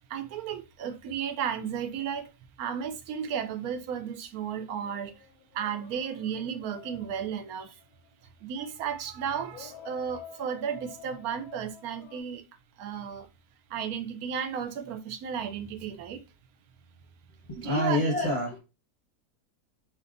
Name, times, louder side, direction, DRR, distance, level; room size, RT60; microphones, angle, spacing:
voice 1, 0.1-2.3 2.6-5.1 5.5-7.8 8.4-12.5 12.8-13.3 13.7-16.2 17.6-18.0, right 8 dB, 75° right, 1.0 m, -34 dB
sound 1, 4.8-8.1 9.4-12.2, left 9 dB, 80° left, 1.1 m, -50 dB
voice 2, 17.5-18.6, left 1 dB, 25° left, 0.7 m, -27 dB
4.3 x 3.3 x 2.5 m
omnidirectional pair, 1.6 m